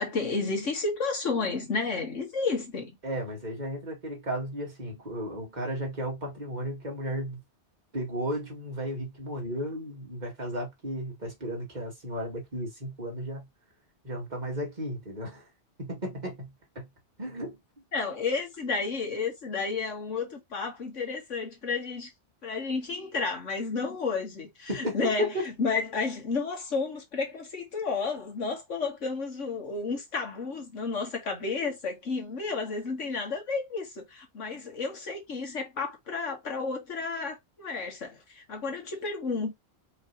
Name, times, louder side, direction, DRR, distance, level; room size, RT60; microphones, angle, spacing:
voice 1, 0.0-3.0 17.9-22.1 22.4-25.3 25.6-39.5, left 4 dB, 85° left, 2.0 m, -31 dB
voice 2, 3.0-7.4 7.9-13.5 14.0-15.5 15.8-16.9 17.2-17.6 24.7-25.5, equal, 35° right, 2.1 m, -34 dB
4.7 x 3.3 x 2.7 m
omnidirectional pair, 1.2 m